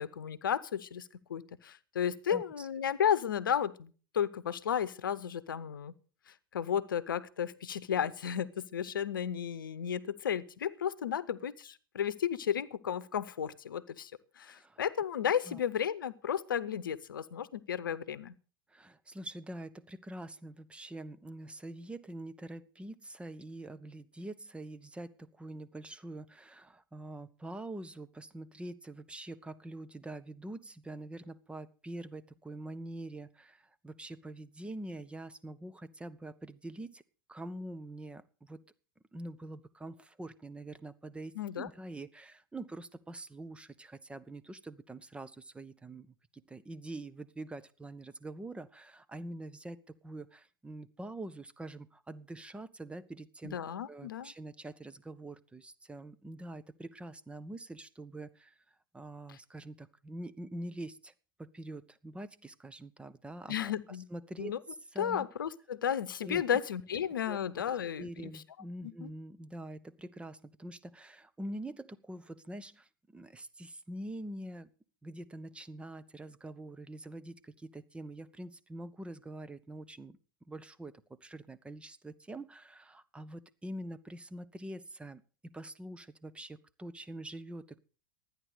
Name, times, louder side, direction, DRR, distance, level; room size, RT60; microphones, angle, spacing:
voice 1, 0.0-5.9 6.3-14.1 14.4-18.3 41.4-41.7 53.5-54.3 59.3-59.4 63.5-64.1 64.4-64.6 65.0-68.3 68.8-69.1, left 8 dB, 75° left, 17 dB, 0.8 m, -33 dB
voice 2, 2.3-2.7 14.5-14.8 15.5-15.6 18.7-37.0 37.3-38.6 39.1-53.6 53.9-61.1 61.4-64.5 64.9-65.3 66.2-66.4 67.3-67.4 68.0-74.7 75.0-80.2 80.5-80.9 81.2-87.8, right 1 dB, 10° right, 13 dB, 0.9 m, -45 dB
13.0 x 9.7 x 6.7 m, 0.39 s
hypercardioid pair, 90°, 11 cm